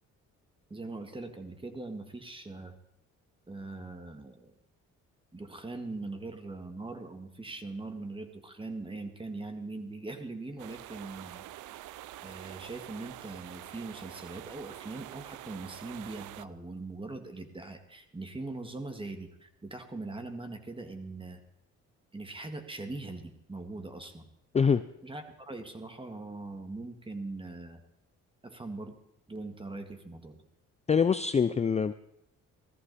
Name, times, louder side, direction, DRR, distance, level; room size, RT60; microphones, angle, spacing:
voice 1, 0.7-2.7 3.5-4.5 5.3-11.4 12.2-21.4 22.1-24.3 25.0-27.8 28.4-28.9 29.3-30.4, right 2 dB, 15° right, 6 dB, 2.0 m, -41 dB
sound 1, 10.6-16.4, right 14 dB, 80° right, 0.6 m, -46 dB
voice 2, 30.9-31.9, left 6 dB, 20° left, 13 dB, 0.4 m, -24 dB
17.0 x 14.0 x 4.2 m, 0.78 s
cardioid pair, 90°, 30 cm